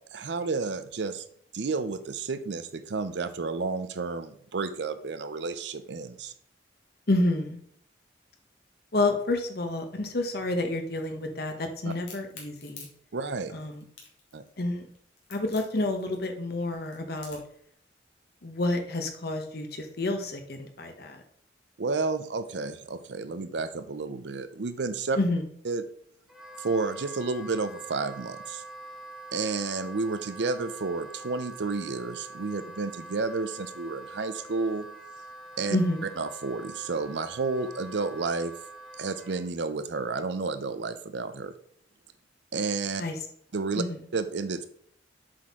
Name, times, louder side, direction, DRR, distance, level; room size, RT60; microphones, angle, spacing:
voice 1, 0.1-1.2 1.5-6.3 11.9-12.0 13.1-13.5 14.3-14.4 21.8-25.2 25.6-25.8 26.6-28.6 29.3-34.9 35.6-35.8 36.2-38.5 39.0-41.5 42.5-43.0 43.5-43.8 44.1-44.7, right 4 dB, 65° right, 11 dB, 0.6 m, -31 dB
voice 2, 7.1-7.6 8.9-12.9 13.5-13.8 14.6-14.9 15.3-17.4 18.4-21.2 25.2-25.4 35.7-36.0 43.0-43.2 43.7-44.0, left 2 dB, 55° left, 5 dB, 1.1 m, -29 dB
Crack, 11.9-17.6, left 5 dB, 80° left, 2.0 m, -48 dB
Wind instrument woodwind instrument, 26.3-39.5, right 2 dB, ahead, 0.7 m, -45 dB
7.5 x 4.3 x 3.6 m, 0.63 s
head